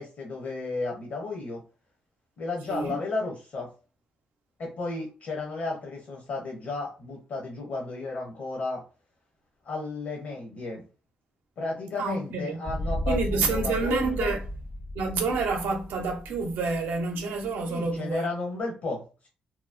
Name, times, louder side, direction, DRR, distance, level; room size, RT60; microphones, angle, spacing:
voice 1, 0.0-1.6 2.4-3.7 4.6-8.8 9.6-10.8 11.6-14.3 17.7-19.3, left 3 dB, 75° left, 0.9 m, -33 dB
voice 2, 2.7-3.0 12.0-12.6 13.1-14.4 14.9-18.3, right 4 dB, 85° right, 0.6 m, -28 dB
sound 1, 12.6-17.9, left 1 dB, 45° left, 0.4 m, -34 dB
3.0 x 2.0 x 2.4 m
cardioid pair, 60°, 3 cm